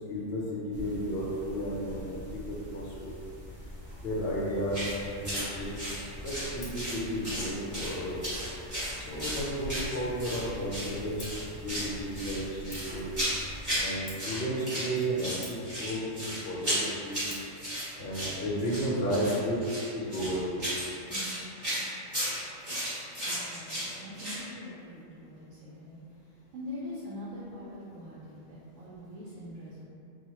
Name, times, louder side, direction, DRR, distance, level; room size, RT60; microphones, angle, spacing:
voice 1, 0.1-3.1 4.0-4.8 5.1-8.2 9.0-11.2 11.6-13.1 13.8-17.3 18.0-19.6 19.9-20.6, equal, 60° left, -5 dB, 0.8 m, -33 dB
sound 1, 0.7-13.8, equal, 35° right, 1.1 m, -44 dB
sound 2, 4.7-4.9 5.2-5.5 5.8-7.0 7.2-7.9 8.2-10.4 10.7-10.9 11.2-11.9 12.2-13.9 14.2-14.9 15.2-24.4, equal, 15° right, 0.9 m, -34 dB
Scissors, 6.0-19.6, left 2 dB, 90° left, 1.1 m, -55 dB
voice 2, 11.5-12.0 19.2-19.3 21.1-21.4 22.9-29.8, left 1 dB, 80° right, -8 dB, 0.9 m, -44 dB
3.0 x 2.2 x 2.9 m, 2.5 s
omnidirectional pair, 1.3 m